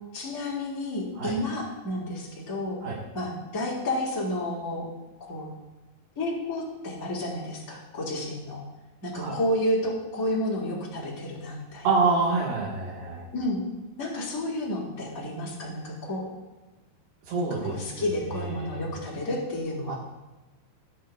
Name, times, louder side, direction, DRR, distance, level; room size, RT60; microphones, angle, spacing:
voice 1, 0.1-2.8 3.1-4.9 5.2-5.5 6.1-8.6 9.0-11.9 13.3-13.6 14.0-16.2 17.7-20.0, left 1 dB, 20° left, -8 dB, 3.2 m, -31 dB
voice 2, 11.8-13.3 17.2-18.8 19.9-20.0, right 4 dB, 60° right, -5 dB, 3.2 m, -27 dB
18.5 x 10.5 x 2.5 m, 1.1 s
omnidirectional pair, 5.9 m